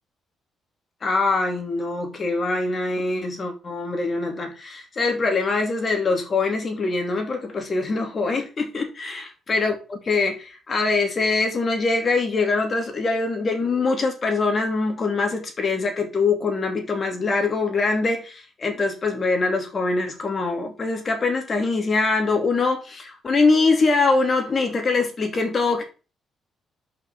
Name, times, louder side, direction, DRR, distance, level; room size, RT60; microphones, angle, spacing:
voice 1, 1.0-25.8, left 3 dB, 40° left, 2.7 m, -23 dB
5.9 x 5.5 x 5.4 m
cardioid pair, 90°, 0 cm